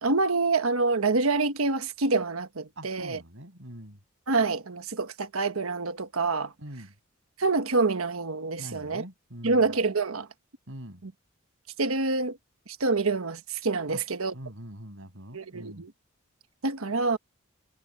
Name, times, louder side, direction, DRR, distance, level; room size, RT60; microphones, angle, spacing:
voice 1, 0.0-3.2 4.3-6.5 7.4-9.0 9.4-10.3 11.0-11.1 11.8-12.4 12.7-14.3 15.3-15.9 16.6-17.2, right 3 dB, 85° right, 1.3 m, -26 dB
voice 2, 2.8-4.0 6.6-6.9 8.6-9.7 10.7-11.0 13.9-14.0 14.3-15.9, right 1 dB, 65° right, 7.8 m, -43 dB
head